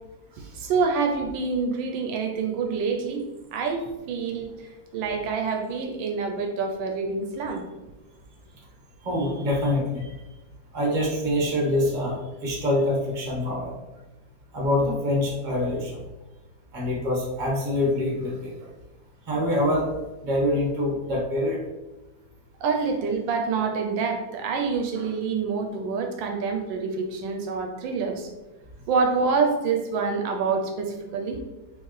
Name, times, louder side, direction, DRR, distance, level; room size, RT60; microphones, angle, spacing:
voice 1, 0.5-3.2 3.5-4.5 4.9-7.6 18.6-18.7 22.6-28.3 28.9-31.4, right 5 dB, 80° right, 4 dB, 1.3 m, -26 dB
voice 2, 9.0-10.1 10.7-13.7 14.5-16.0 16.7-18.5 19.3-19.9 20.2-21.6, left 1 dB, 30° right, -2 dB, 1.1 m, -25 dB
4.5 x 3.5 x 3.1 m, 1.1 s
omnidirectional pair, 2.1 m